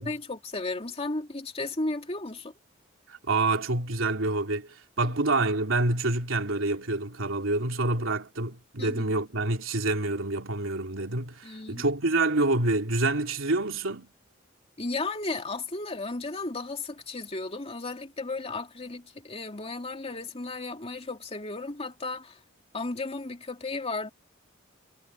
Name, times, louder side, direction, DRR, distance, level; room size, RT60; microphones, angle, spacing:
voice 1, 0.0-2.5 8.8-9.0 11.4-11.8 14.8-22.4 22.7-24.1, left 3 dB, 30° left, 2.7 m, -34 dB
voice 2, 3.1-14.1, right 2 dB, 90° right, 2.9 m, -27 dB
head